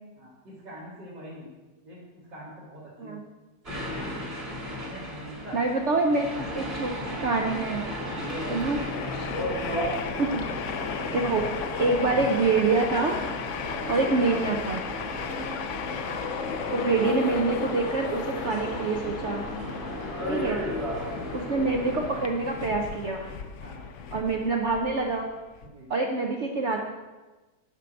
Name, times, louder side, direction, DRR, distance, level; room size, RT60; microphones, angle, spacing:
voice 1, 0.2-1.5 1.8-2.0 2.3-3.2 3.7-4.3 4.8-5.6 8.0-8.6 13.6-13.8 15.2-15.4 19.8-20.1 21.1-21.4 23.6-24.1 25.6-25.9, equal, 80° right, -10 dB, 2.9 m, -45 dB
sound 1, 3.6-22.2, equal, 35° right, 3.3 m, -35 dB
voice 2, 5.5-7.8 8.5-8.8 9.1-9.3 10.2-10.4 11.1-11.5 11.8-13.2 13.9-14.8 16.7-19.4 20.3-20.6 21.3-23.3 24.1-25.3 25.9-26.8, right 3 dB, 60° right, 2 dB, 0.7 m, -26 dB
Train, 8.1-25.7, left 6 dB, 70° left, 0.7 m, -36 dB
10.0 x 4.6 x 6.2 m, 1.2 s
omnidirectional pair, 1.9 m